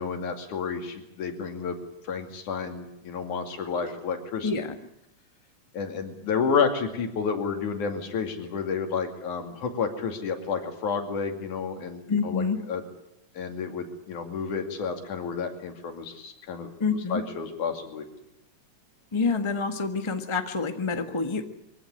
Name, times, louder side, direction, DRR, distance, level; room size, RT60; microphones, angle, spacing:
voice 1, 0.0-1.8 2.0-4.5 5.7-12.8 13.4-16.7 17.1-18.1, left 5 dB, 80° left, 5 dB, 4.0 m, -30 dB
voice 2, 12.1-12.6 16.8-17.2 19.1-21.4, left 4 dB, 20° left, 6 dB, 0.7 m, -27 dB
23.5 x 16.0 x 9.9 m, 0.84 s
omnidirectional pair, 3.5 m